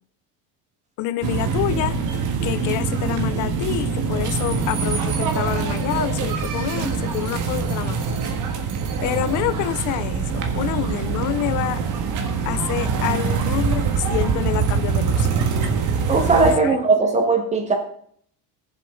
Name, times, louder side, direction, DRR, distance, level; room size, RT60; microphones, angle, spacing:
voice 1, 1.0-2.0 2.4-8.2 9.0-11.8 12.5-15.3 16.6-16.8, left 14 dB, 50° left, 15 dB, 0.7 m, -27 dB
sound 1, 1.2-16.6, right 5 dB, 50° right, 1.8 m, -24 dB
voice 2, 16.1-17.7, right 3 dB, 15° right, 3 dB, 1.6 m, -18 dB
20.0 x 7.3 x 3.9 m, 0.62 s
cardioid pair, 180°, 39 cm